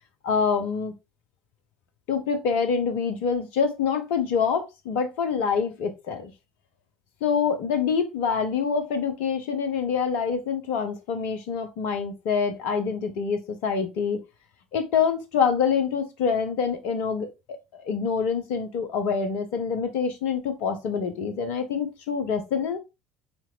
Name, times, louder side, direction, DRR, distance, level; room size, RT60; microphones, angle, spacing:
voice 1, 0.2-0.9 2.1-6.3 7.2-14.2 14.7-22.8, left 6 dB, 60° left, 7 dB, 1.0 m, -26 dB
4.4 x 4.3 x 2.5 m, 0.24 s
figure-of-eight pair, 60°, 3 cm